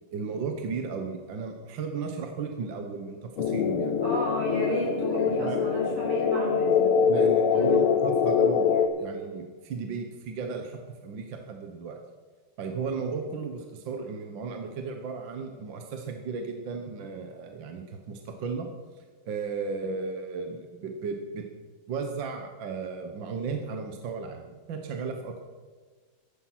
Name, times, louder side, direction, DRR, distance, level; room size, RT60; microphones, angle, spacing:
voice 1, 0.1-4.2 5.4-5.6 5.9-6.1 7.1-12.0 12.6-18.7 19.0-21.5 21.9-25.4, right 5 dB, 65° right, 4 dB, 1.8 m, -35 dB
sound 1, 3.4-8.9, left 6 dB, 90° left, 1.8 m, -24 dB
voice 2, 4.0-6.9 7.5-7.8, equal, 85° right, -4 dB, 6.2 m, -32 dB
14.0 x 11.0 x 6.0 m, 1.4 s
omnidirectional pair, 2.3 m